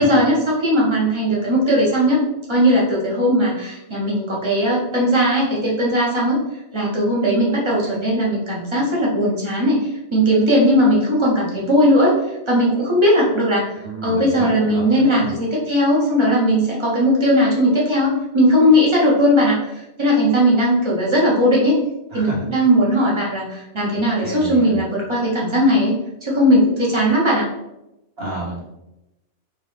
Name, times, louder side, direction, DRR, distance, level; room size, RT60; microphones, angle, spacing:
voice 1, 0.0-2.2 2.5-6.4 6.7-12.1 12.5-13.7 14.0-19.6 20.0-21.8 22.1-25.9 26.2-27.5, equal, 25° right, -5 dB, 1.2 m, -18 dB
voice 2, 13.8-15.3 22.1-22.5 24.2-24.8 28.2-28.6, right 2 dB, 55° right, -6 dB, 1.6 m, -30 dB
4.3 x 2.6 x 3.5 m, 0.91 s
omnidirectional pair, 1.2 m